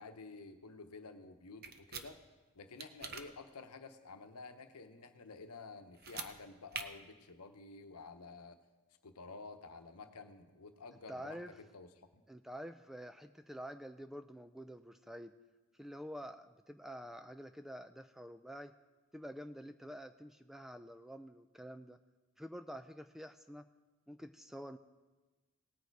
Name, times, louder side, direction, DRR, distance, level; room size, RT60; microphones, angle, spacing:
voice 1, 0.0-2.2 2.5-8.6 9.0-12.2, left 4 dB, 90° left, 7 dB, 0.9 m, -51 dB
sound 1, 1.6-2.1 2.8-3.2 5.9-6.3 6.7-6.8, right 6 dB, 45° right, 0.7 m, -43 dB
voice 2, 11.1-11.5 12.3-15.3 15.8-18.7 19.1-22.0 22.4-23.7 24.1-24.8, equal, ahead, 9 dB, 0.3 m, -48 dB
18.5 x 6.7 x 4.7 m, 1.2 s
head